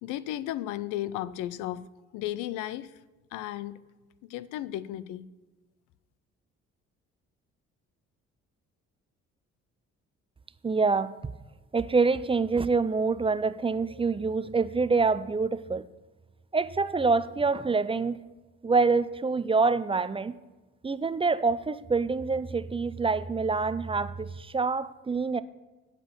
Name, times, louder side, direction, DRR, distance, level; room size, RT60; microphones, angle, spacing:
voice 1, 0.0-1.9 2.1-3.0 3.3-3.8 4.2-5.3, left 13 dB, 90° left, 0.5 m, -34 dB
voice 2, 10.6-11.2 11.7-15.8 16.5-18.2 18.6-20.3 20.8-25.4, right 4 dB, 20° right, 0.4 m, -26 dB
10.0 x 4.5 x 7.7 m
supercardioid pair, 65°, 30 cm